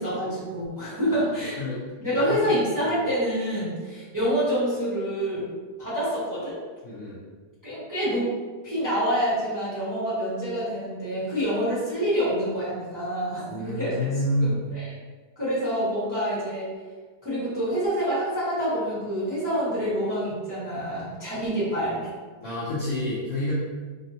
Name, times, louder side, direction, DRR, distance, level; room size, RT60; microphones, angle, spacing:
voice 1, 0.0-1.6 2.0-5.5 5.8-6.6 7.6-8.3 8.6-14.0 14.4-14.9 15.4-16.7 17.2-22.1, equal, 15° right, -11 dB, 0.8 m, -27 dB
voice 2, 2.1-2.5 6.8-7.2 13.5-14.6 22.4-23.5, left 1 dB, 65° left, -9 dB, 0.8 m, -28 dB
3.5 x 2.1 x 2.6 m, 1.4 s
omnidirectional pair, 1.8 m